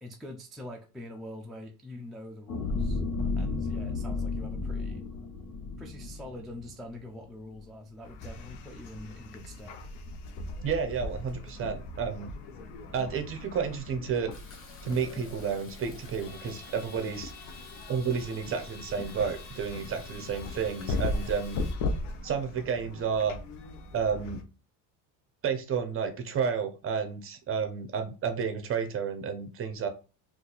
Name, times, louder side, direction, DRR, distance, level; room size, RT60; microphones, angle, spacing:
voice 1, 0.0-3.0 3.4-5.0 5.8-9.8, left 1 dB, ahead, -1 dB, 0.3 m, -44 dB
sound 1, 2.5-7.0 7.5-7.6, left 3 dB, 65° left, 1.1 m, -33 dB
sound 2, 8.0-24.4, left 2 dB, 85° left, 0.8 m, -38 dB
voice 2, 10.6-12.3 12.9-14.3 14.8-17.3 17.9-21.6 22.2-23.4 23.9-24.4 25.4-29.9, right 6 dB, 30° right, 8 dB, 0.7 m, -31 dB
Fill (with liquid), 14.3-21.8, left 3 dB, 30° left, 0.9 m, -52 dB
2.6 x 2.5 x 3.8 m, 0.32 s
cardioid pair, 120°, 41 cm